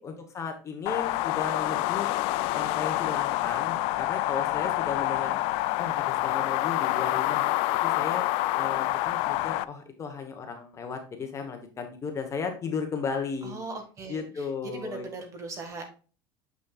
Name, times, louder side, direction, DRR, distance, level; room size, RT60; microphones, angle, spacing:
voice 1, 0.0-2.1 2.5-5.3 5.8-7.4 7.8-8.2 8.5-13.6 14.1-15.1, left 5 dB, 25° left, 5 dB, 1.0 m, -35 dB
sound 1, 0.9-9.6, left 17 dB, 60° left, 0.3 m, -27 dB
voice 2, 13.4-15.9, right 2 dB, 30° right, 5 dB, 1.6 m, -39 dB
7.0 x 6.3 x 2.3 m, 0.36 s
cardioid pair, 145°, 11 cm